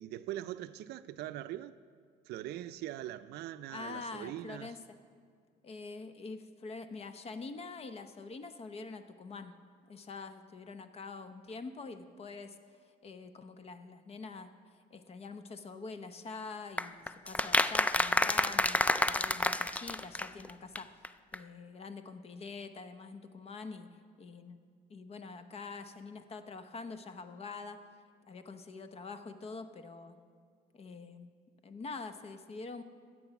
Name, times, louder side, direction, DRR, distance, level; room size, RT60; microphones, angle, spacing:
voice 1, 0.0-1.7 2.3-4.7, right 13 dB, 75° right, 0.5 m, -41 dB
voice 2, 3.7-4.8 5.6-9.6 9.9-12.6 13.0-18.8 19.1-23.9 24.2-24.6 24.9-27.8 28.3-30.2 30.7-31.3 31.6-32.8, left 4 dB, 35° left, 0.8 m, -45 dB
sound 1, 16.8-20.5 20.8-20.9 21.0-21.1 21.3-21.4, left 2 dB, 10° left, 0.3 m, -29 dB
13.0 x 7.8 x 5.9 m
cardioid pair, 110°, 17 cm